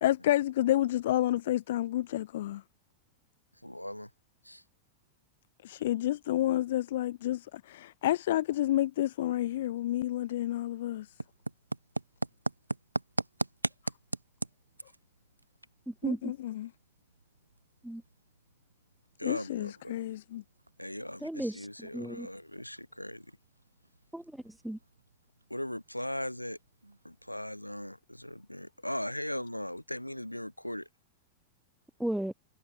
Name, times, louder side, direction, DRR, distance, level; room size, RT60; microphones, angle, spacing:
voice 1, 0.0-2.6 5.6-11.1 16.0-16.7 19.2-20.4, left 14 dB, 55° left, 0.5 m, -30 dB
voice 2, 3.5-4.1 4.4-4.6 5.7-5.8 19.2-19.9 20.8-23.3 25.5-26.6 27.0-30.9, left 1 dB, 90° left, 3.0 m, -39 dB
sound 1, 9.2-27.4, right 2 dB, 85° right, 2.3 m, -42 dB
voice 3, 15.9-16.3 17.8-18.0 21.2-22.3 24.1-24.8 32.0-32.3, right 1 dB, ahead, 1.9 m, -35 dB
figure-of-eight pair, 90°, 0 cm